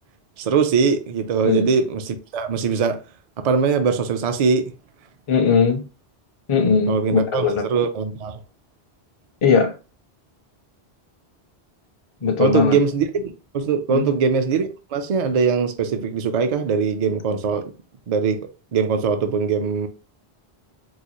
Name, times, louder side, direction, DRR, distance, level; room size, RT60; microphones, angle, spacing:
voice 1, 0.4-3.0 3.4-4.6 6.9-8.4 12.4-17.6 18.1-18.4 18.7-19.9, right 5 dB, 55° right, 0.4 m, -21 dB
voice 2, 5.3-5.8 6.5-7.7 9.4-9.7 12.2-12.8 13.9-14.1, left 5 dB, 40° left, 0.5 m, -19 dB
3.9 x 2.2 x 3.0 m
omnidirectional pair, 1.1 m